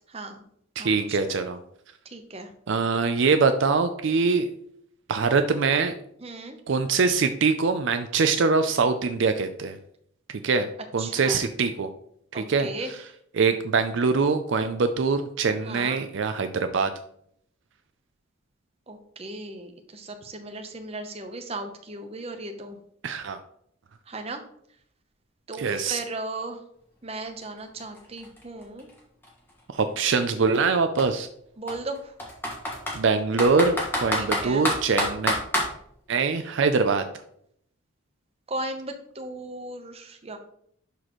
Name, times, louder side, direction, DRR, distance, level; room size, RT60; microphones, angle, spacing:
voice 1, 0.1-0.4 0.8-1.4 2.1-2.5 6.2-6.6 11.0-11.4 12.3-12.9 15.6-16.0 18.9-22.8 24.1-24.4 25.5-26.6 27.0-28.9 31.6-32.1 34.1-34.7 38.5-40.4, right 2 dB, 30° right, 5 dB, 0.8 m, -36 dB
voice 2, 0.8-1.6 2.7-4.5 5.1-5.9 6.7-9.8 10.4-10.7 10.9-11.9 12.3-13.0 13.3-16.9 23.0-23.4 25.6-26.0 29.7-31.3 32.9-35.4 36.1-37.0, right 4 dB, 60° right, 8 dB, 0.4 m, -23 dB
Computer keyboard, 27.4-27.5 27.8-29.8 30.5-30.7 31.0-31.1 31.7-33.0 33.4-35.7, left 1 dB, 10° left, 1.5 m, -27 dB
11.0 x 4.2 x 3.0 m, 0.68 s
head